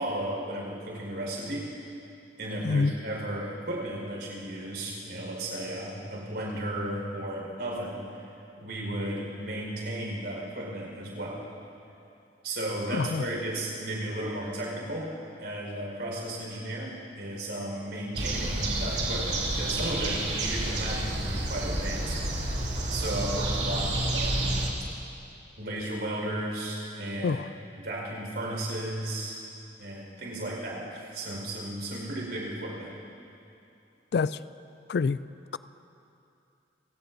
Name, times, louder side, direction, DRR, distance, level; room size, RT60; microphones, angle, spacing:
voice 1, 0.0-1.7 2.4-8.3 8.6-11.5 12.4-22.2 22.9-24.6 25.6-29.4 29.8-33.0, right 1 dB, 65° right, -2 dB, 4.8 m, -34 dB
voice 2, 12.9-13.2 27.2-27.4 34.1-34.4 34.9-35.2, left 4 dB, 60° left, 16 dB, 0.3 m, -26 dB
sound 1, 18.1-24.7, right 1 dB, 85° right, 2.5 m, -29 dB
29.5 x 17.0 x 2.7 m, 2.7 s
head